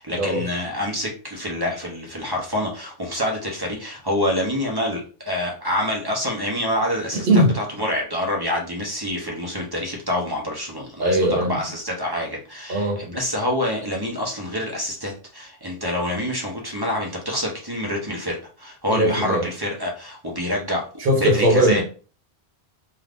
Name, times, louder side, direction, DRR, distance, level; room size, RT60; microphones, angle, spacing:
voice 1, 0.0-20.8 21.2-21.8, left 1 dB, 25° right, 0.6 m, -27 dB
voice 2, 11.0-11.5 12.7-13.0 18.9-19.4 21.0-21.8, right 1 dB, 55° right, 0.9 m, -19 dB
2.5 x 2.4 x 3.3 m
omnidirectional pair, 1.1 m